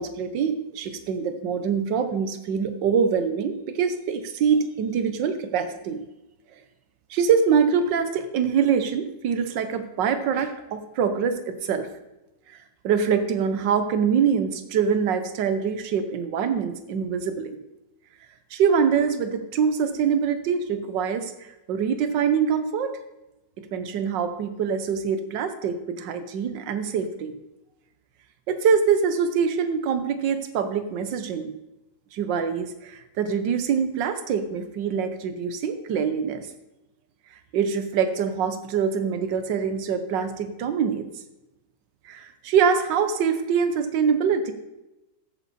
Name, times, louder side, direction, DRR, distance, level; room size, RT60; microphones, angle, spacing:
voice 1, 0.0-6.0 7.1-11.9 12.5-12.6 12.8-17.6 18.5-23.0 23.6-27.3 28.5-31.5 32.1-36.5 37.5-41.1 42.0-44.5, right 6 dB, 85° right, 10 dB, 1.6 m, -24 dB
14.0 x 9.0 x 4.2 m, 0.95 s
omnidirectional pair, 1.9 m